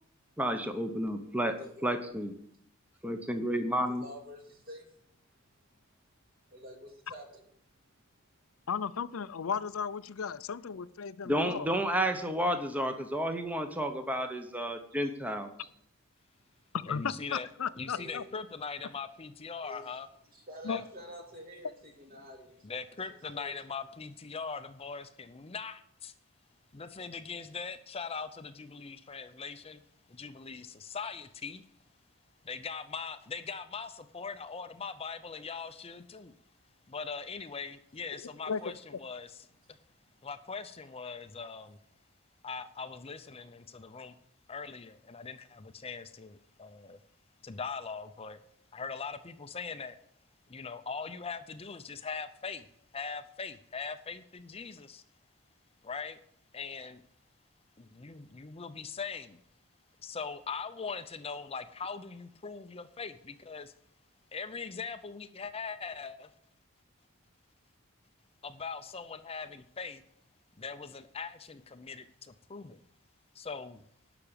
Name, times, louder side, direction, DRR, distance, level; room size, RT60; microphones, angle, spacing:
voice 1, 0.4-1.5 1.8-2.3 3.0-4.0 11.2-15.5, equal, 5° right, 6 dB, 0.9 m, -31 dB
voice 2, 3.9-5.1 5.6-5.7 6.4-7.4 15.0-15.1 17.9-18.2 19.6-19.9 20.3-22.7 23.1-23.5 40.2-40.3, equal, 45° right, 2 dB, 2.9 m, -48 dB
voice 3, 8.7-11.7 16.8-18.2 20.6-20.8 38.5-38.6, left 6 dB, 80° left, 15 dB, 0.5 m, -35 dB
voice 4, 16.9-17.5 17.8-20.1 20.7-20.8 22.6-26.1 26.7-29.8 30.2-31.6 32.4-36.3 36.9-39.8 40.2-41.8 42.4-44.1 44.5-47.0 47.4-48.4 48.7-50.0 50.5-52.7 52.9-55.0 55.8-56.2 56.5-57.0 57.8-59.4 60.0-63.7 64.3-66.3 68.4-70.0 70.6-72.8 73.3-73.8, left 5 dB, 30° left, 10 dB, 0.6 m, -41 dB
12.0 x 6.0 x 8.7 m, 0.68 s
head